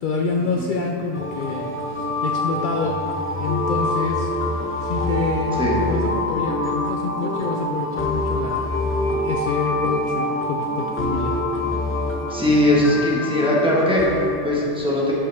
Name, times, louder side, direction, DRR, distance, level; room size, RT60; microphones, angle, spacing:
voice 1, 0.0-3.0 3.4-4.3 4.8-8.6 9.1-11.4, left 4 dB, 60° left, 1 dB, 0.6 m, -27 dB
sound 1, 1.1-14.3, left 2 dB, 15° left, 0.6 m, -25 dB
voice 2, 12.3-15.1, left 1 dB, 5° right, -6 dB, 1.3 m, -20 dB
11.0 x 5.6 x 3.4 m, 2.6 s
omnidirectional pair, 1.1 m